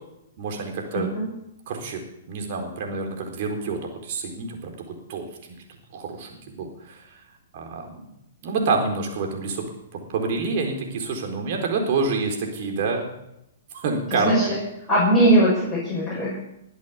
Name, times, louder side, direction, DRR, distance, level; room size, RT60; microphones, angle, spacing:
voice 1, 0.4-1.1 1.7-2.0 2.3-5.6 5.9-7.2 7.5-8.0 8.4-9.6 9.9-13.1 13.7-14.5, right 4 dB, 50° right, 2 dB, 4.2 m, -28 dB
voice 2, 0.9-1.3 14.1-14.5 14.9-16.4, right 1 dB, 15° left, -7 dB, 6.5 m, -20 dB
21.0 x 8.3 x 7.2 m, 0.84 s
hypercardioid pair, 130°, 0 cm